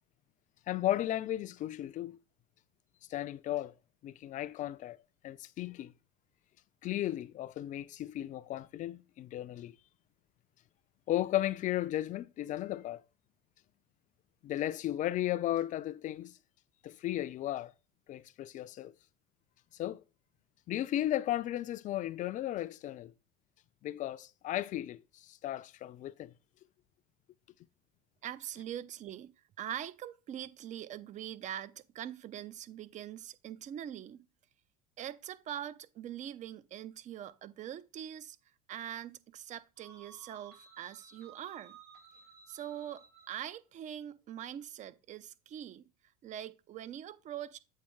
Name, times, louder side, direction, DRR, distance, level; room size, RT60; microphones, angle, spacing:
voice 1, 0.7-2.2 3.1-3.7 4.0-5.0 5.2-5.9 6.8-9.8 11.1-13.0 14.4-16.4 16.8-17.7 18.1-18.9 19.7-20.0 20.7-23.1 23.8-26.3, left 13 dB, 40° left, 0.4 m, -35 dB
voice 2, 28.2-29.3 29.6-34.3 35.0-38.4 38.7-41.8 42.5-45.8 46.2-47.6, right 10 dB, 40° right, 0.5 m, -43 dB
sound 1, 39.8-43.5, right 6 dB, 55° right, 3.7 m, -56 dB
7.6 x 3.4 x 4.6 m
hypercardioid pair, 85°, 20 cm